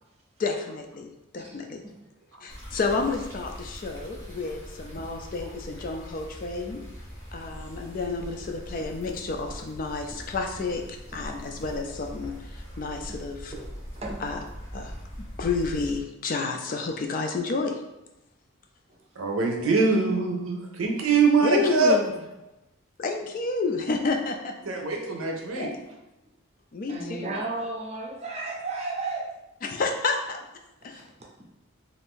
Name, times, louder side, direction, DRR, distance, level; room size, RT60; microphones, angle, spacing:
voice 1, 0.4-1.8 2.4-6.8 7.3-10.8 11.1-12.3 12.8-13.5 14.2-14.4 14.7-14.9 15.4-17.8 21.4-22.0 23.0-24.5 25.5-25.8 26.7-27.4 29.6-30.4 30.8-31.0, left 3 dB, 40° left, 0.3 m, -30 dB
voice 2, 1.4-1.9 13.9-14.2 26.9-29.3 30.8-31.0, right 3 dB, 30° right, 0.5 m, -34 dB
sound 1, 2.5-16.0, equal, 10° left, 0.7 m, -41 dB
voice 3, 19.2-22.0 24.6-25.7, right 4 dB, 85° right, 0.6 m, -23 dB
2.5 x 2.5 x 3.6 m
head